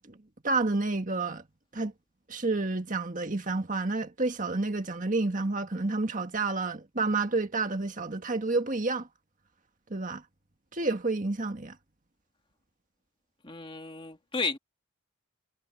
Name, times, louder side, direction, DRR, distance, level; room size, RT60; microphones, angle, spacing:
voice 1, 0.4-1.4 1.7-1.9 2.3-9.1 9.9-10.2 10.7-11.8, right 3 dB, 35° right, 1.7 m, -29 dB
voice 2, 13.4-14.6, left 4 dB, 25° left, 2.2 m, -33 dB
head